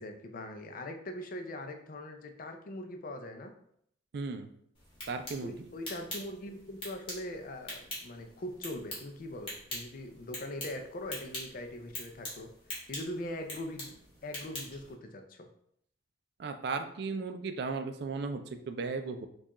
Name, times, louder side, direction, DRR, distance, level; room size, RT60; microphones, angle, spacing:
voice 1, 0.0-3.5 5.4-12.5 12.9-13.9 14.2-15.5, left 1 dB, 50° left, 5 dB, 0.4 m, -41 dB
voice 2, 4.1-4.5 5.1-5.7 16.4-19.3, right 4 dB, 60° right, 7 dB, 0.4 m, -36 dB
sound 1, 4.7-14.9, left 1 dB, 30° left, 1.3 m, -44 dB
4.5 x 2.4 x 2.9 m, 0.69 s
head